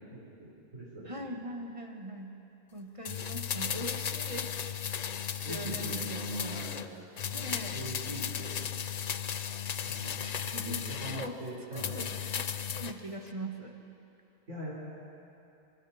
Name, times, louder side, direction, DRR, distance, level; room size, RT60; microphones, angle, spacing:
voice 1, 0.1-1.1 5.4-6.8 7.3-8.6 9.9-12.0 14.5-14.7, right 1 dB, 85° right, -8 dB, 4.8 m, -42 dB
voice 2, 1.0-2.3 2.7-4.5 5.5-6.7 7.3-7.9 10.5-11.4 11.7-13.8, right 1 dB, 25° right, 2 dB, 1.8 m, -41 dB
sound 1, 3.0-6.9 7.2-11.3 11.7-13.0 13.3-13.4, left 8 dB, 50° left, 0.5 m, -35 dB
27.0 x 24.5 x 4.4 m, 2.8 s
omnidirectional pair, 1.3 m